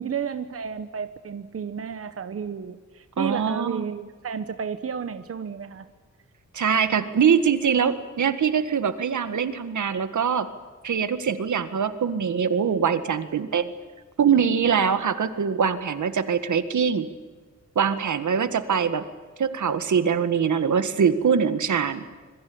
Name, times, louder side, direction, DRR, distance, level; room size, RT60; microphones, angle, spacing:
voice 1, 0.0-5.9, right 7 dB, 50° right, 10 dB, 1.1 m, -32 dB
voice 2, 3.2-3.8 6.5-10.5 10.8-13.7 14.2-17.1 17.8-19.0 19.4-22.0, right 7 dB, 80° right, 11 dB, 1.8 m, -23 dB
26.0 x 23.0 x 8.7 m, 1.4 s
wide cardioid pair, 160°, 30 cm